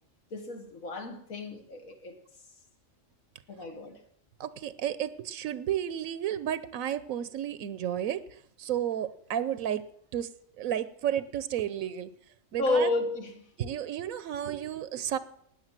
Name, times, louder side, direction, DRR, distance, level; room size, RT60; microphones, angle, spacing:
voice 1, 0.3-2.2 3.5-4.0 12.6-13.4, left 2 dB, 90° left, 2.3 m, -31 dB
voice 2, 4.4-9.8 10.1-10.3 10.6-12.1 12.5-12.9 13.6-15.2, right 10 dB, 90° right, 1.1 m, -32 dB
18.5 x 6.7 x 7.4 m
omnidirectional pair, 1.4 m